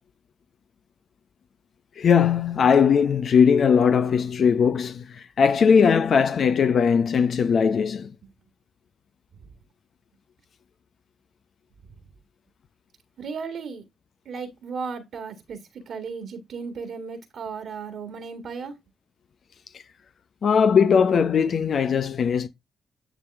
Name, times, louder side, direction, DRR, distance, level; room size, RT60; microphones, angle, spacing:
voice 1, 2.0-8.1 20.4-22.5, left 6 dB, 60° left, 0.7 m, -19 dB
voice 2, 13.2-13.8 14.3-18.8, right 5 dB, 70° right, 1.8 m, -35 dB
10.5 x 3.5 x 3.4 m
hypercardioid pair, 45°, 0 cm